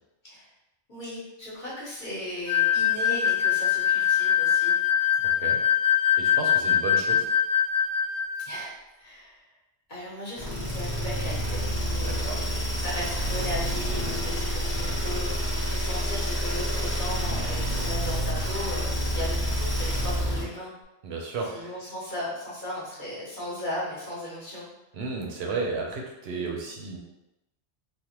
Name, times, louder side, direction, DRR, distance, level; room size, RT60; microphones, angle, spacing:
voice 1, 0.9-4.8 6.3-6.4 8.4-9.5 9.9-20.7 21.5-24.7, left 1 dB, 45° left, -8 dB, 1.1 m, -37 dB
sound 1, 2.5-8.5, left 9 dB, 90° left, 1.0 m, -23 dB
voice 2, 6.2-7.3 12.0-12.4 21.0-21.7 24.9-27.0, right 4 dB, 65° right, 0 dB, 0.8 m, -33 dB
sound 2, 10.4-20.5, equal, 20° left, 0.8 m, -28 dB
3.3 x 2.2 x 2.9 m, 0.96 s
omnidirectional pair, 1.2 m